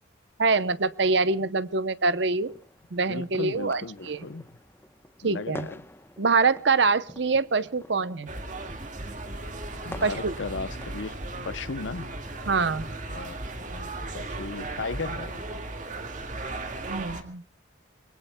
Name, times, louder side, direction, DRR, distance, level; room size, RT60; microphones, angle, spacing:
voice 1, 0.4-2.5 2.9-4.2 5.2-5.7 6.2-8.3 10.0-10.3 12.5-12.9 16.9-17.4, right 4 dB, 65° right, 0.8 m, -25 dB
sound 1, 2.4-11.4, left 1 dB, 10° left, 0.9 m, -47 dB
voice 2, 3.1-4.4 5.2-5.8 9.8-11.2 11.4-12.1 13.1-13.4 13.6-15.6, left 3 dB, 75° left, 0.8 m, -36 dB
sound 2, 8.3-17.2, right 2 dB, 40° right, 2.0 m, -36 dB
26.5 x 22.0 x 2.2 m
head